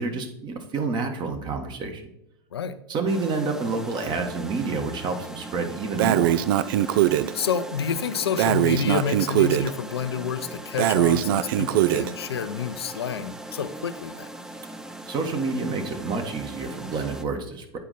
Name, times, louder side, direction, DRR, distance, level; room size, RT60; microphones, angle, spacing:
voice 1, 0.0-2.1 2.9-6.4 15.1-17.8, right 4 dB, 35° right, 4 dB, 1.5 m, -29 dB
sound 1, 3.1-17.2, right 1 dB, 5° right, 0.6 m, -40 dB
Breathing, 6.0-7.3 8.4-9.7 10.8-12.1, right 12 dB, 60° right, 0.4 m, -21 dB
voice 2, 7.3-14.3, left 7 dB, 75° left, 10 dB, 0.6 m, -29 dB
8.6 x 5.0 x 4.1 m, 0.84 s
figure-of-eight pair, 90°, 13 cm